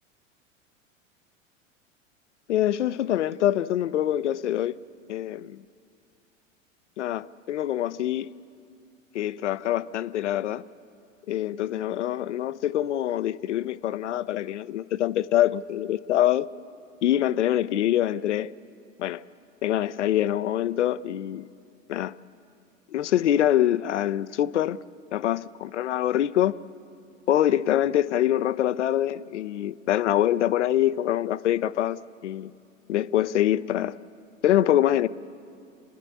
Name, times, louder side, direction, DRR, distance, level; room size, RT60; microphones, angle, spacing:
voice 1, 2.5-4.8 5.1-5.6 7.0-8.3 9.1-10.7 11.3-16.5 17.0-18.5 19.0-19.2 19.6-21.5 21.9-22.1 22.9-24.8 25.1-26.6 27.3-32.5 32.9-34.0 34.4-35.1, left 12 dB, 60° left, 17 dB, 0.7 m, -25 dB
30.0 x 11.0 x 8.4 m, 2.4 s
figure-of-eight pair, 85°, 39 cm